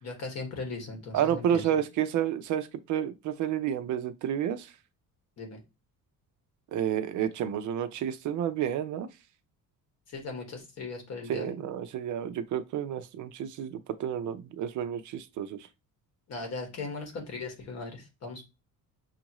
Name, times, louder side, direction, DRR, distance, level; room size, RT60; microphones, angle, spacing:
voice 1, 0.0-1.8 5.4-5.6 10.1-11.5 16.3-18.4, left 3 dB, 45° left, 1.4 m, -38 dB
voice 2, 1.1-4.7 6.7-9.1 11.3-15.6, right 10 dB, 55° right, 0.5 m, -30 dB
6.1 x 2.5 x 2.9 m
cardioid pair, 170°, 35 cm